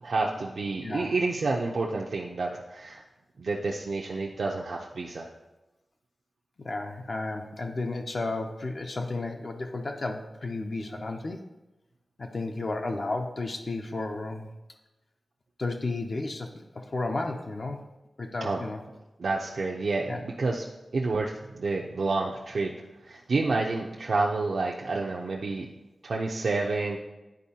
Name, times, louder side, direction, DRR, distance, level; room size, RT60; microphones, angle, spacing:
voice 1, 0.0-3.0 3.4-5.3 18.4-18.6 19.2-20.6 20.9-22.7 23.0-25.7 26.0-27.0, right 3 dB, 70° right, -2 dB, 0.5 m, -29 dB
voice 2, 0.8-1.1 6.6-11.4 12.2-14.5 15.6-17.8 18.2-18.8 20.1-20.2, left 2 dB, 50° left, 3 dB, 0.5 m, -33 dB
10.5 x 4.5 x 2.8 m, 1.0 s
wide cardioid pair, 115°, 0 cm